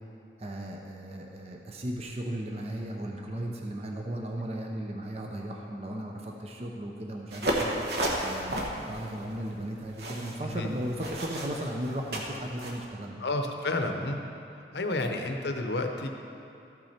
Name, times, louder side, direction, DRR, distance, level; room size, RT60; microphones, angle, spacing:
voice 1, 0.4-13.2, right 1 dB, 35° right, 1 dB, 0.6 m, -36 dB
sound 1, 7.3-12.8, right 1 dB, 65° right, 1.1 m, -33 dB
voice 2, 13.2-14.2 14.7-16.1, left 2 dB, 75° left, 4 dB, 0.8 m, -30 dB
13.5 x 6.2 x 4.3 m, 2.7 s
head